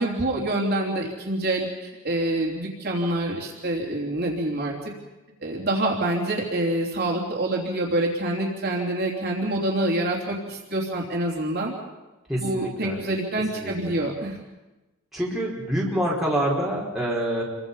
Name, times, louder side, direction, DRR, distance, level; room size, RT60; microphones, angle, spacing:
voice 1, 0.0-4.9 5.4-11.7 12.3-14.4, right 1 dB, 50° right, -1 dB, 3.0 m, -26 dB
voice 2, 12.3-12.9 13.5-13.7 15.1-17.4, right 1 dB, ahead, -6 dB, 4.6 m, -26 dB
28.5 x 23.0 x 5.5 m, 1.1 s
head